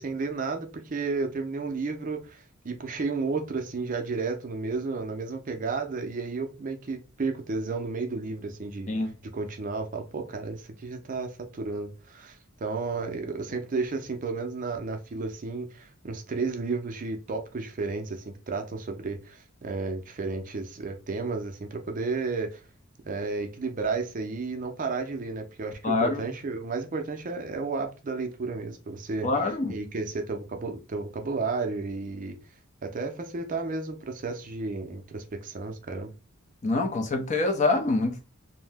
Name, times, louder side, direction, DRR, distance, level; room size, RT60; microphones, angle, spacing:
voice 1, 0.0-9.1 9.3-22.6 23.0-29.3 29.7-32.4 32.8-36.1, right 4 dB, 40° right, 0.4 m, -32 dB
voice 2, 25.8-26.2 29.2-29.8 36.6-38.3, left 3 dB, 35° left, 0.5 m, -25 dB
2.6 x 2.0 x 3.4 m
head